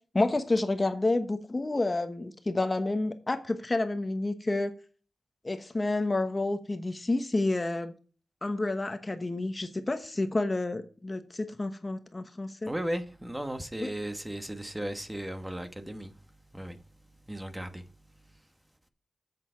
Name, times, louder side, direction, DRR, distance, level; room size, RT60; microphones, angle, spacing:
voice 1, 0.1-4.7 5.4-7.9 8.4-12.7 13.8-13.9, left 2 dB, 25° left, 1.1 m, -29 dB
voice 2, 12.6-16.2 16.5-16.8 17.3-17.8, right 1 dB, 10° right, 1.2 m, -36 dB
8.0 x 7.2 x 5.6 m
wide cardioid pair, 95°, 0 cm